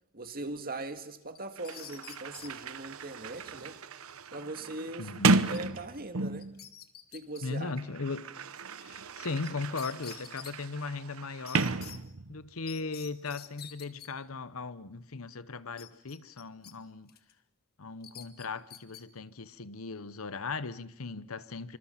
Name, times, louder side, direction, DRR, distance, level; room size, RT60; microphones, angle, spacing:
voice 1, 0.1-3.8 4.3-6.5 7.1-7.7, right 2 dB, 45° right, 2.0 m, -40 dB
Sliding door, 1.2-1.3 1.6-6.6 7.5-12.5, right 3 dB, 90° right, 0.9 m, -33 dB
sound 1, 1.3-2.5 5.2-5.6 5.9-6.0 6.4-7.4 9.4-9.5 9.8-10.5 11.5-12.0 12.7-14.1 15.8-16.7 17.1-17.3 18.0-19.0, left 10 dB, 50° left, 1.7 m, -48 dB
voice 2, 5.0-5.4 7.4-8.3 8.8-11.7 12.3-17.1 17.8-21.8, left 4 dB, 85° left, 1.0 m, -38 dB
26.5 x 25.5 x 5.8 m
head